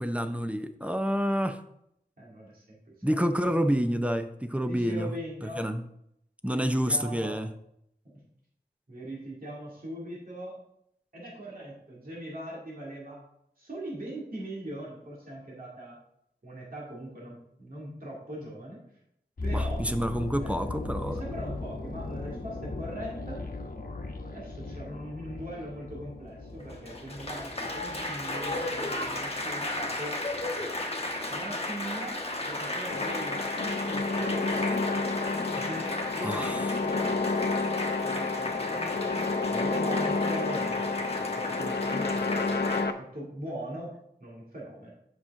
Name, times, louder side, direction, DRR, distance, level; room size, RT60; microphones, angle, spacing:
voice 1, 0.0-1.6 3.0-5.1 5.6-5.8 6.4-7.5 19.5-21.2 36.2-36.7, equal, 5° right, 8 dB, 0.6 m, -28 dB
voice 2, 2.2-3.2 4.6-5.7 6.5-7.4 8.9-10.6 11.1-13.2 13.6-16.0 16.4-18.8 19.4-19.8 20.4-20.6 21.0-23.4 24.2-30.2 31.3-35.1 35.5-37.5 38.0-39.1 39.4-40.9 41.2-43.9 44.2-44.9, right 1 dB, 55° right, -5 dB, 2.3 m, -41 dB
sound 1, 19.4-29.4 29.6-29.8, left 2 dB, 55° left, 1.0 m, -38 dB
Applause, 26.6-42.8, left 1 dB, 35° left, 1.1 m, -34 dB
sound 2, 32.9-42.9, left 3 dB, 80° left, 0.6 m, -30 dB
7.8 x 5.8 x 3.6 m, 0.76 s
wide cardioid pair, 55°, 17 cm